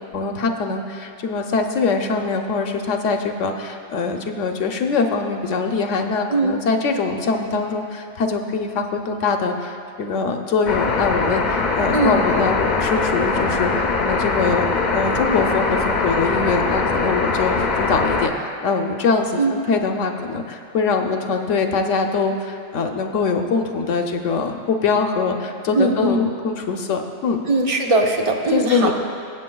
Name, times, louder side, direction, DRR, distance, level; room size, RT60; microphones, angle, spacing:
voice 1, 0.1-14.7 14.9-27.4 28.5-28.9, left 4 dB, 85° left, 4 dB, 1.1 m, -23 dB
sound 1, 10.7-18.3, left 3 dB, 45° left, 0.7 m, -22 dB
voice 2, 25.7-26.3 27.5-28.9, right 2 dB, 35° right, 2 dB, 0.7 m, -19 dB
19.5 x 8.2 x 2.3 m, 2.6 s
omnidirectional pair, 1.3 m